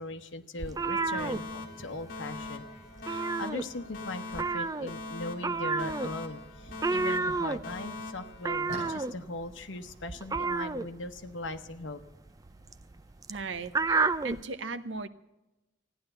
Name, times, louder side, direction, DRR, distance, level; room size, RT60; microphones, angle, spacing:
voice 1, 0.0-2.7 3.0-12.0, left 2 dB, 80° left, 5 dB, 1.0 m, -40 dB
sound 1, 0.5-11.8, equal, 40° right, 6.9 m, -53 dB
sound 2, 0.6-2.1 2.4-2.6 2.9-4.0 4.3-14.4, right 3 dB, 20° right, 0.4 m, -31 dB
Alarm, 1.2-9.2, left 3 dB, 50° left, 1.9 m, -42 dB
voice 2, 13.3-15.1, right 3 dB, 80° right, 12 dB, 0.9 m, -37 dB
15.0 x 10.0 x 7.8 m, 0.99 s
head